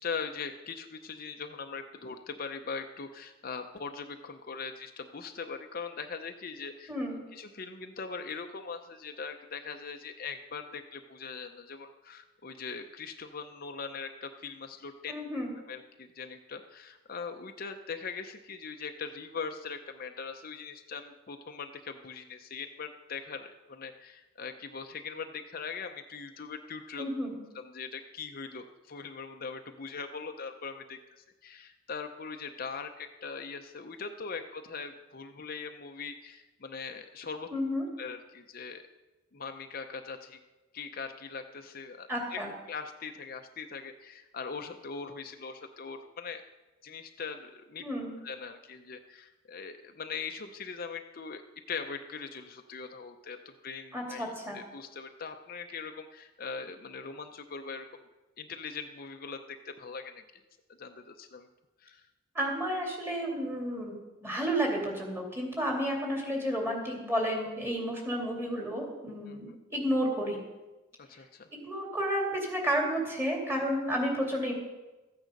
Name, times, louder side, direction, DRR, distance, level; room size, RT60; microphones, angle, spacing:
voice 1, 0.0-6.9 7.3-15.1 15.7-27.0 27.5-37.5 38.0-38.8 39.3-40.4 40.7-42.4 42.7-46.4 46.8-47.8 48.2-51.4 51.7-57.9 58.4-60.2 60.8-61.5 61.8-62.1 69.3-69.6 71.0-71.5, left 5 dB, 50° left, 6 dB, 0.6 m, -41 dB
voice 2, 6.9-7.2 15.1-15.5 27.0-27.4 37.5-37.9 42.1-42.5 47.8-48.2 53.9-54.6 62.3-64.0 64.2-70.4 71.5-74.5, equal, 15° right, -1 dB, 2.8 m, -31 dB
14.0 x 9.0 x 5.3 m, 1.1 s
head